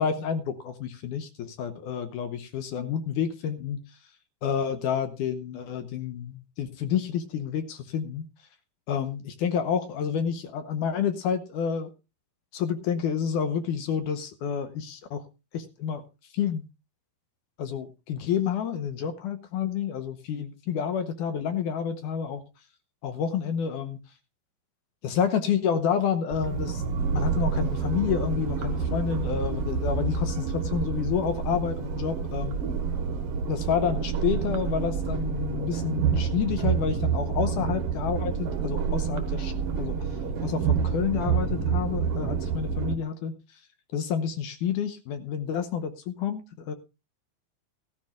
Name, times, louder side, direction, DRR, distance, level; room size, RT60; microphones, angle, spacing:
voice 1, 0.0-3.8 4.4-8.3 8.9-11.9 12.5-15.2 15.5-16.0 16.3-16.7 17.6-22.4 23.0-24.0 25.0-26.8 27.1-32.6 33.5-43.4 43.9-46.7, left 7 dB, 70° left, 10 dB, 2.1 m, -29 dB
sound 1, 26.3-42.9, right 6 dB, 70° right, 1.4 m, -28 dB
14.5 x 14.5 x 2.4 m, 0.27 s
omnidirectional pair, 4.5 m